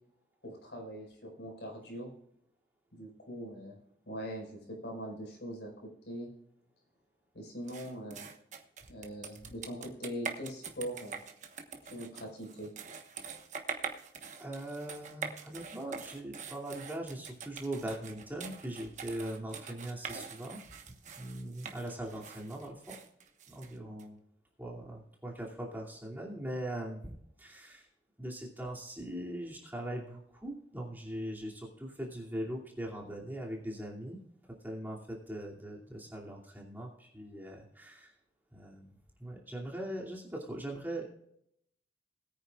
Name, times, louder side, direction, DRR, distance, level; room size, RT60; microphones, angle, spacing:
voice 1, 0.4-2.1 2.9-3.8 4.1-6.3 7.3-8.3 8.9-11.2 11.9-12.7, equal, 75° left, 1 dB, 4.9 m, -42 dB
sound 1, 7.7-24.0, right 5 dB, 40° right, 1.3 m, -44 dB
voice 2, 14.3-20.6 21.2-23.0 23.5-24.2 24.6-27.9 28.2-34.2 34.6-38.1 38.5-41.1, right 1 dB, 10° right, -3 dB, 2.6 m, -41 dB
20.5 x 9.5 x 2.4 m, 0.74 s
head